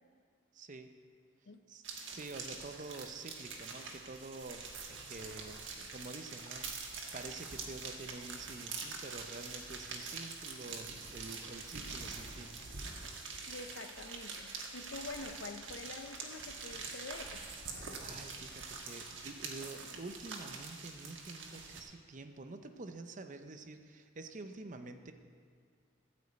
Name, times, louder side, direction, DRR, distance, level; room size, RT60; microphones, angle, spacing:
voice 1, 0.5-0.9 1.7-12.6 18.0-25.1, right 3 dB, 40° right, 8 dB, 0.6 m, -48 dB
sound 1, 1.8-21.8, right 4 dB, 70° right, 1.4 m, -45 dB
voice 2, 13.5-17.4, left 3 dB, 65° left, 8 dB, 0.7 m, -46 dB
13.5 x 5.2 x 8.1 m, 2.2 s
head